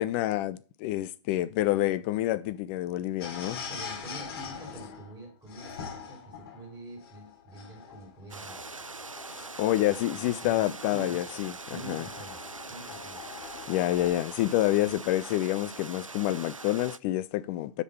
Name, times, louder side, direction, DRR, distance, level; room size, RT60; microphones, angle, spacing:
voice 1, 0.0-3.6 9.4-12.1 13.7-17.8, left 15 dB, 25° left, 0.3 m, -28 dB
sound 1, 3.2-14.1, left 6 dB, 50° left, 2.8 m, -44 dB
voice 2, 3.4-8.9 10.1-11.4 11.7-13.2, right 2 dB, 5° right, 3.3 m, -46 dB
sound 2, 8.3-17.0, right 4 dB, 90° right, 0.4 m, -43 dB
6.3 x 5.2 x 6.9 m
figure-of-eight pair, 115°, 17 cm